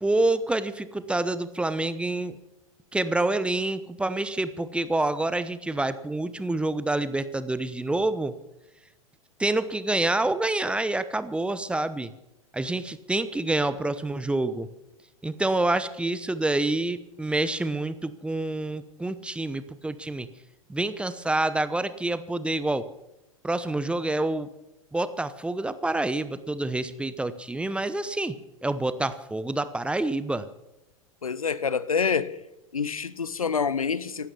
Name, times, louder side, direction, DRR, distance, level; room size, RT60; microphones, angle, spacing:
voice 1, 0.0-2.4 2.9-8.3 9.4-12.1 12.5-14.7 15.2-20.3 20.7-22.9 23.4-24.5 24.9-28.4 28.6-30.5, right 2 dB, 5° right, 0.8 m, -27 dB
voice 2, 31.2-32.4 32.7-34.3, left 6 dB, 80° left, 0.8 m, -27 dB
15.5 x 12.5 x 7.0 m
figure-of-eight pair, 90°, 18 cm